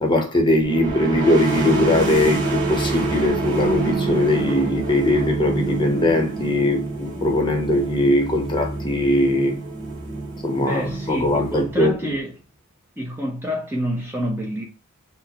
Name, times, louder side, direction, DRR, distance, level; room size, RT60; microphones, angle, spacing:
voice 1, 0.0-9.6 10.4-10.8 11.1-12.1, left 1 dB, 20° left, 0.9 m, -20 dB
sound 1, 0.6-12.2, right 3 dB, 35° right, 2.0 m, -27 dB
voice 2, 10.6-12.3 13.0-14.6, equal, 10° right, 0.7 m, -28 dB
6.1 x 2.1 x 2.9 m
head